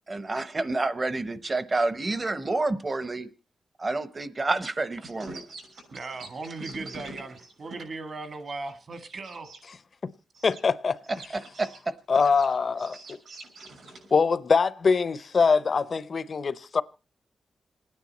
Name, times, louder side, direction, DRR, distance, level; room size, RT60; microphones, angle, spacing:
voice 1, 0.1-3.3 3.8-5.4 11.6-11.9, right 2 dB, 30° right, 0.9 m, -28 dB
sound 1, 5.0-9.6 10.3-10.6 11.0-14.2, right 2 dB, 80° right, 6.2 m, -45 dB
voice 2, 5.9-9.5, right 3 dB, 50° right, 1.6 m, -38 dB
voice 3, 10.4-10.9 12.1-12.9 14.1-16.8, left 5 dB, 50° left, 0.7 m, -23 dB
27.0 x 9.6 x 4.2 m
wide cardioid pair, 130°, 0 cm